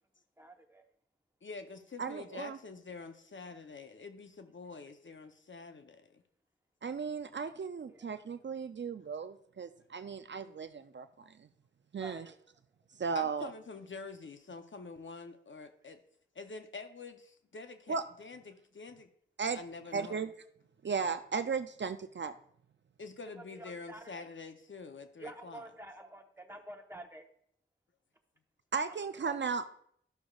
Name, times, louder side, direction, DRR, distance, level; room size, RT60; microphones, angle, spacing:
voice 1, 0.4-0.8 7.9-8.1 12.0-12.3 23.4-24.2 25.2-27.3 29.2-29.4, right 1 dB, 10° right, 4 dB, 1.0 m, -49 dB
voice 2, 1.4-6.2 10.4-10.5 13.1-16.0 16.3-19.1 19.5-20.2 23.0-25.7, left 4 dB, 65° left, 7 dB, 0.7 m, -47 dB
voice 3, 2.0-2.6 6.8-11.5 11.9-12.3 13.0-13.5 17.9-18.0 19.4-19.6 19.9-20.3 20.8-22.3 28.7-29.6, right 5 dB, 60° right, 10 dB, 0.4 m, -36 dB
11.5 x 6.2 x 2.4 m, 0.66 s
cardioid pair, 40°, 21 cm